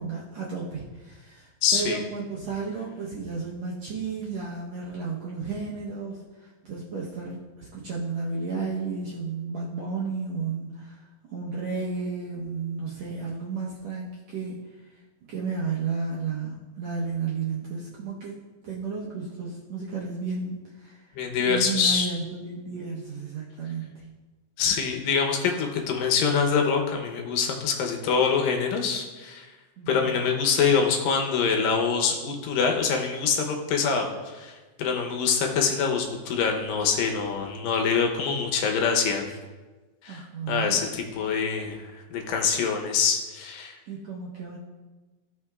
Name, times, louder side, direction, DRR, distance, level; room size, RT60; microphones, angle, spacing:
voice 1, 0.0-11.0 11.3-14.6 15.3-18.4 18.6-21.1 21.4-24.0 29.8-30.2 40.1-40.8 43.9-44.6, right 4 dB, 70° right, -5 dB, 1.7 m, -33 dB
voice 2, 1.6-2.0 21.2-22.1 24.6-29.5 29.9-39.2 40.0-41.8 42.1-43.8, left 6 dB, 75° left, 2 dB, 2.5 m, -25 dB
16.5 x 5.8 x 2.4 m, 1.3 s
omnidirectional pair, 4.2 m